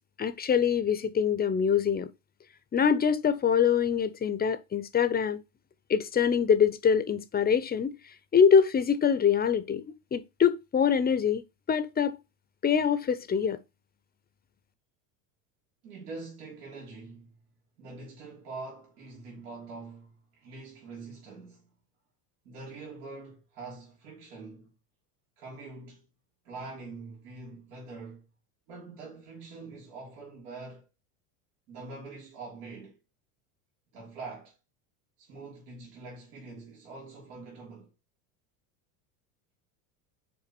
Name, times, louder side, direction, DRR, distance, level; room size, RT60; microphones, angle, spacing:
voice 1, 0.2-2.1 2.7-5.4 5.9-7.9 8.3-9.8 10.1-11.4 11.7-12.2 12.6-13.6, left 7 dB, 20° left, 0.6 m, -24 dB
voice 2, 15.8-17.4 17.8-21.7 22.4-24.7 25.4-26.1 26.4-28.2 28.7-30.9 31.7-33.0 33.9-34.5 35.2-37.9, right 3 dB, 80° right, 2.9 m, -44 dB
6.0 x 4.7 x 4.4 m
supercardioid pair, 110°, 46 cm